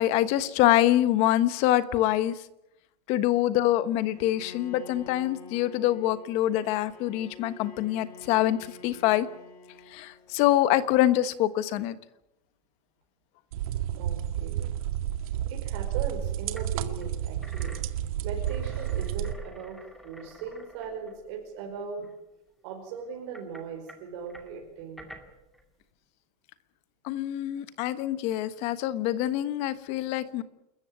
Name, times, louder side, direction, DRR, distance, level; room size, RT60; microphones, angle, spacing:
voice 1, 0.0-2.4 3.1-9.3 9.9-11.9 27.0-30.4, left 13 dB, 30° left, 14 dB, 1.3 m, -25 dB
Bowed string instrument, 4.1-10.4, left 3 dB, 80° left, 6.6 m, -48 dB
sound 1, 13.5-19.3, right 11 dB, 60° right, 2.0 m, -31 dB
voice 2, 13.9-14.7 15.4-22.1 22.6-25.0, right 6 dB, 45° right, 2 dB, 5.0 m, -39 dB
sound 2, 16.0-16.1 16.6-16.7 17.0-21.6 22.0-22.1 23.0-25.7, equal, ahead, 2.2 m, -49 dB
28.5 x 14.5 x 9.6 m, 0.87 s
supercardioid pair, 170°, 20 cm